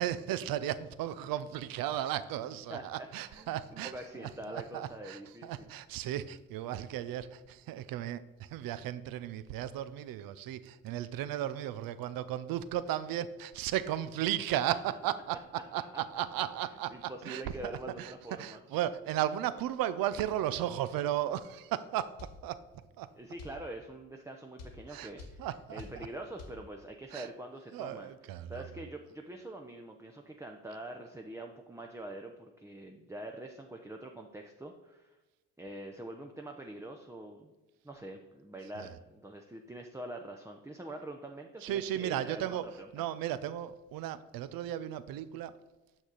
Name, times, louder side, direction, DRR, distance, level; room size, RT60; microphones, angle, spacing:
voice 1, 0.0-15.4 15.7-17.4 18.0-18.1 18.4-22.1 22.4-22.6 23.0-23.1 24.9-25.1 25.4-26.1 27.1-27.3 27.7-28.6 38.7-38.9 41.6-42.7 42.9-45.5, right 12 dB, 55° right, 0.6 m, -35 dB
voice 2, 2.7-5.7 15.7-16.0 16.6-18.6 23.2-35.2 35.6-37.5 37.8-42.9, right 1 dB, 5° right, 0.6 m, -45 dB
sound 1, 22.2-22.4 23.4-23.6 24.6-24.8 25.2-25.4 25.8-26.0 26.4-26.6, left 4 dB, 75° left, 1.3 m, -46 dB
6.5 x 6.0 x 3.9 m
hypercardioid pair, 50°, 42 cm